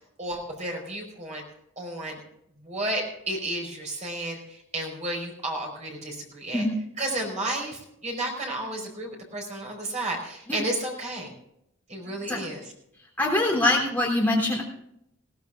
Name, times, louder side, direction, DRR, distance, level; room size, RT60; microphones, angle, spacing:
voice 1, 0.2-1.4 1.8-2.2 2.6-4.4 4.7-6.6 7.0-11.3 11.9-12.6, right 1 dB, 35° right, 0 dB, 4.8 m, -32 dB
voice 2, 12.1-12.4 13.2-14.6, left 1 dB, 10° left, -3 dB, 3.4 m, -24 dB
21.0 x 16.0 x 2.5 m, 0.78 s
head